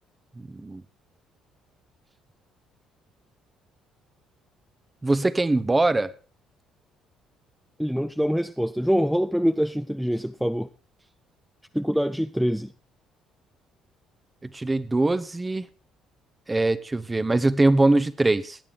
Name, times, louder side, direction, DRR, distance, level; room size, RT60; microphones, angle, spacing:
voice 1, 0.4-0.8 5.0-6.1 14.5-15.7 16.5-18.6, right 2 dB, 20° right, 0.9 m, -22 dB
voice 2, 7.8-10.7 11.7-12.7, equal, ahead, 0.5 m, -24 dB
18.0 x 10.0 x 3.3 m
figure-of-eight pair, 50°, 0 cm